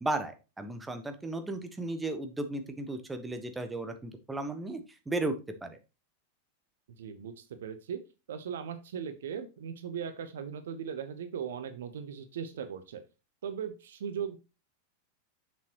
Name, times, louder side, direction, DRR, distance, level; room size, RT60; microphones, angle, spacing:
voice 1, 0.0-5.3 5.6-5.8, right 2 dB, 10° right, 8 dB, 1.2 m, -35 dB
voice 2, 7.0-8.0 8.3-13.0 13.4-14.4, right 7 dB, 60° right, 10 dB, 0.9 m, -38 dB
7.2 x 6.4 x 3.0 m, 0.29 s
figure-of-eight pair, 90°, 0 cm